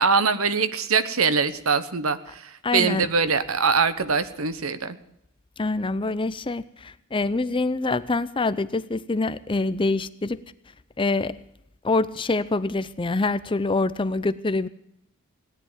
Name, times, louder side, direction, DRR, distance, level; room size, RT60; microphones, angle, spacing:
voice 1, 0.0-5.0, right 5 dB, 85° right, 13 dB, 1.1 m, -23 dB
voice 2, 2.6-3.1 5.6-10.4 11.0-11.4 11.8-14.7, left 3 dB, 25° left, 14 dB, 0.6 m, -25 dB
17.5 x 10.5 x 7.3 m, 0.78 s
head